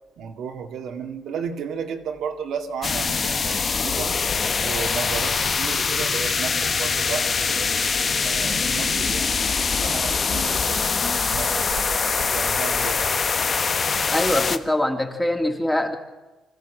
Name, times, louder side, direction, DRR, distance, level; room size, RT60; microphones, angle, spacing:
voice 1, 0.2-4.1 4.6-7.7 8.2-13.2, right 7 dB, 75° right, 3 dB, 2.1 m, -33 dB
sound 1, 2.8-14.6, left 5 dB, 40° left, 1.2 m, -23 dB
voice 2, 14.1-15.9, left 1 dB, 10° left, 2 dB, 2.8 m, -23 dB
25.5 x 14.5 x 7.7 m, 1.2 s
cardioid pair, 90°, 0 cm